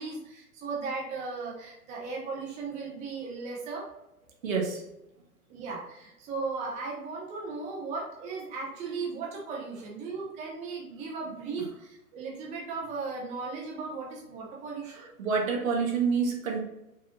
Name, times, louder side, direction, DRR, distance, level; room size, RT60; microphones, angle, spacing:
voice 1, 0.0-3.9 5.5-15.1, right 4 dB, 15° right, -3 dB, 0.7 m, -36 dB
voice 2, 4.4-4.9 11.6-11.7 14.9-16.6, right 5 dB, 60° right, 0 dB, 1.4 m, -28 dB
5.3 x 3.4 x 2.6 m, 0.90 s
figure-of-eight pair, 110°, 46 cm